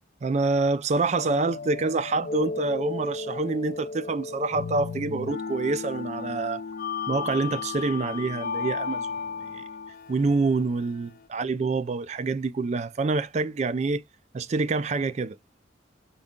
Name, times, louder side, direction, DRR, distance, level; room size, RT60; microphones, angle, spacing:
voice 1, 0.2-6.6 7.1-9.1 9.5-9.6 10.1-14.0 14.3-15.4, right 3 dB, 35° right, 0.3 m, -26 dB
sound 1, 1.1-11.3, left 5 dB, 45° left, 0.3 m, -34 dB
5.2 x 2.3 x 3.6 m
head